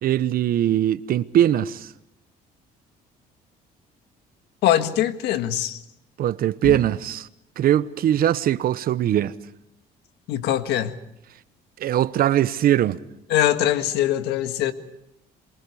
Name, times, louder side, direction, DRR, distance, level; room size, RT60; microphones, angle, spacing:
voice 1, 0.0-1.9 6.2-7.3 7.6-9.4 11.8-13.0, right 11 dB, 60° right, 1.0 m, -21 dB
voice 2, 4.6-5.8 6.6-6.8 10.3-10.9 13.3-14.7, left 12 dB, 85° left, 1.7 m, -22 dB
28.0 x 23.5 x 4.9 m
cardioid pair, 110°, 17 cm